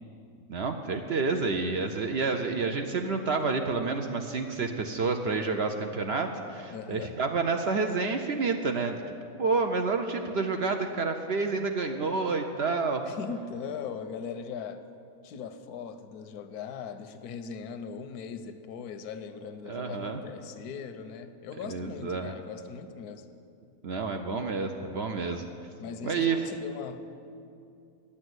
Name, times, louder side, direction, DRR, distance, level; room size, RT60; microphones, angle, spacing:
voice 1, 0.5-9.0 9.4-13.0 19.7-20.2 21.7-22.3 23.8-25.5 26.0-26.4, right 4 dB, 60° right, 5 dB, 0.7 m, -29 dB
voice 2, 6.7-7.2 13.0-14.8 15.2-23.3 25.8-27.0, left 6 dB, 85° left, 10 dB, 1.2 m, -39 dB
9.9 x 8.4 x 7.9 m, 2.6 s
omnidirectional pair, 1.6 m